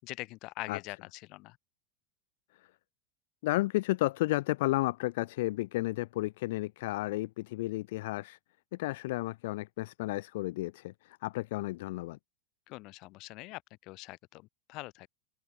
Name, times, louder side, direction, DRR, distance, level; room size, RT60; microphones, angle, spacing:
voice 1, 0.0-1.6 12.7-15.1, left 22 dB, 50° left, 4.7 m, -44 dB
voice 2, 3.4-8.4 8.7-12.2, left 19 dB, 65° left, 1.8 m, -32 dB
open air
hypercardioid pair, 100°, 0 cm